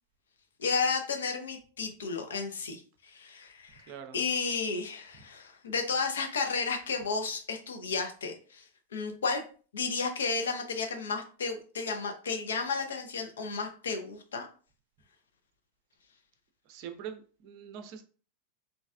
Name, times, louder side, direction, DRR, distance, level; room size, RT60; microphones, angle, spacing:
voice 1, 0.6-8.6 8.9-9.4 9.7-14.5, left 4 dB, 65° left, 0.7 m, -33 dB
voice 2, 3.9-4.2 16.7-18.0, right 8 dB, 40° right, 0.5 m, -43 dB
4.0 x 3.1 x 2.4 m
figure-of-eight pair, 90°, 0 cm